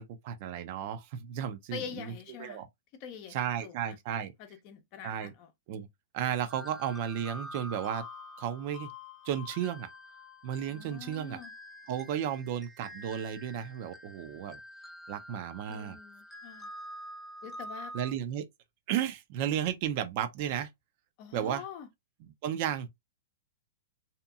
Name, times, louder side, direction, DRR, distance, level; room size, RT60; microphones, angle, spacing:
voice 1, 0.0-2.1 2.4-2.7 3.3-4.3 5.0-5.3 5.7-5.9 6.1-8.0 8.4-8.9 9.2-9.9 10.4-11.4 11.9-14.6 15.1-16.0 17.9-18.4 18.9-20.7 21.3-21.6 22.2-22.9, right 9 dB, 50° right, 0.5 m, -33 dB
voice 2, 1.7-2.6 3.0-3.4 3.6-4.0 4.4-5.5 10.6-11.5 15.7-16.7 17.4-17.9 21.2-21.9, left 7 dB, 40° left, 0.7 m, -44 dB
Sleepless Lullaby, 6.5-18.1, left 1 dB, 5° left, 0.6 m, -47 dB
2.8 x 2.5 x 2.3 m
hypercardioid pair, 115°, 0 cm